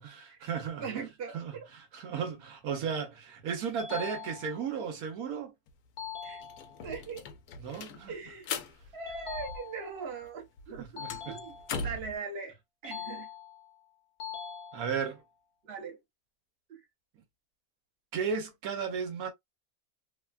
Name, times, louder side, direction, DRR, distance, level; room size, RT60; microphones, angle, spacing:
voice 1, 0.0-0.8 1.3-5.5 7.6-8.1 10.8-11.4 14.7-15.2 18.1-19.3, right 6 dB, 75° right, 1.2 m, -35 dB
voice 2, 0.8-1.6 6.2-6.4 6.8-7.2 8.1-8.5 8.9-12.5 12.8-13.3 15.6-16.0 16.7-16.8, right 5 dB, 50° right, 0.9 m, -40 dB
sound 1, 3.8-4.8 6.0-7.0 9.1-10.1 11.0-12.0 12.8-13.7 14.2-15.2, left 7 dB, 50° left, 0.8 m, -43 dB
sound 2, 5.7-5.8 6.0-10.0 10.2-12.2, left 4 dB, 90° left, 1.1 m, -40 dB
3.2 x 2.2 x 2.3 m
omnidirectional pair, 1.6 m